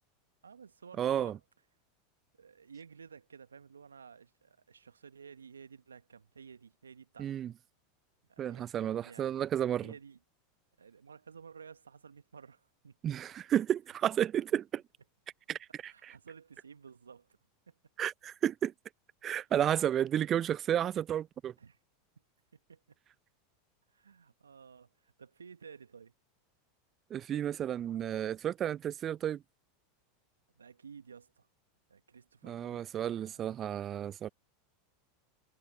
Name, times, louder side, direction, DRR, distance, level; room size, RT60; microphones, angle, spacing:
voice 1, 0.4-1.4 2.3-7.4 8.3-9.3 9.8-10.2 10.8-13.0 15.8-17.4 17.7-17.8 21.6-21.8 22.5-22.8 23.9-26.1 30.5-31.5 31.9-33.5, right 6 dB, 80° right, 1.5 m, -53 dB
voice 2, 1.0-1.4 7.2-7.5 8.4-9.9 13.0-14.8 15.5-16.1 18.0-18.7 19.2-21.5 27.1-29.4 32.4-34.3, right 10 dB, 35° right, 0.5 m, -32 dB
figure-of-eight pair, 85°, 0 cm